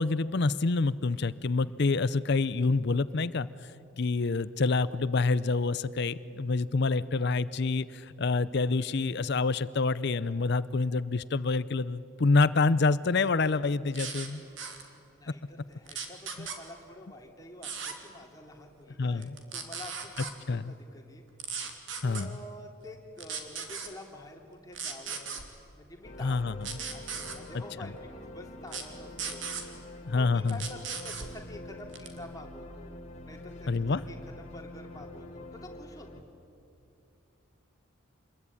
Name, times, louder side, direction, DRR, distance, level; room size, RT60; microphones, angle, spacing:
voice 1, 0.0-3.7 4.0-14.4 16.4-16.5 19.0-19.4 20.5-20.7 22.0-22.3 26.2-26.5 30.1-30.6 33.7-34.0, left 3 dB, 50° left, 16 dB, 0.6 m, -27 dB
sound 1, 13.9-14.3 14.6-14.8 15.9-16.6 17.6-17.9 19.2-20.3 21.4-22.2 23.2-23.9 24.7-25.4 26.6-27.4 28.7-28.8 29.2-29.6 30.5-31.3 31.9-32.2, right 6 dB, 60° right, 2.8 m, -37 dB
voice 2, 15.1-21.2 22.0-25.4 25.7-26.6 26.9-29.5 29.8-33.7 34.1-36.1, left 1 dB, 15° left, 2 dB, 2.8 m, -48 dB
sound 2, 26.0-36.2, left 1 dB, 35° left, 2.1 m, -46 dB
27.5 x 21.5 x 9.8 m, 2.6 s
head